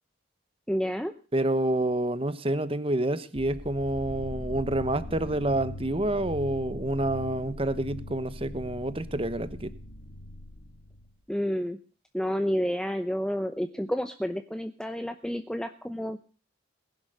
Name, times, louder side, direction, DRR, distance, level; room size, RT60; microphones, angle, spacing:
voice 1, 0.7-1.1 11.3-11.8 12.1-16.2, equal, 5° left, 8 dB, 0.7 m, -30 dB
voice 2, 1.3-9.7, right 1 dB, 30° right, 14 dB, 1.0 m, -28 dB
sound 1, 3.4-11.2, left 1 dB, 65° left, 1.8 m, -40 dB
20.0 x 11.0 x 6.6 m, 0.39 s
head